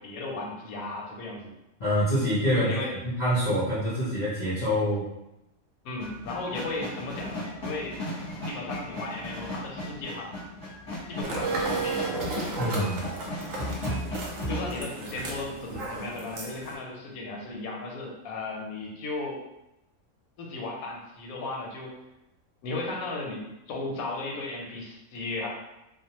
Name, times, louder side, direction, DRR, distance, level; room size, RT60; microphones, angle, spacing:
voice 1, 0.0-1.5 2.5-3.0 5.8-7.9 8.5-10.3 11.1-12.1 12.7-12.8 14.5-19.4 20.4-22.0 22.6-25.5, left 2 dB, 85° left, 0 dB, 1.1 m, -35 dB
voice 2, 1.8-2.7 3.0-5.1 12.6-13.1, equal, 55° left, -9 dB, 0.4 m, -26 dB
sound 1, 6.0-14.8, left 1 dB, 25° left, 0.8 m, -36 dB
sound 2, 11.2-16.8, right 3 dB, 75° right, 0.9 m, -34 dB
2.5 x 2.2 x 2.8 m, 0.91 s
omnidirectional pair, 1.5 m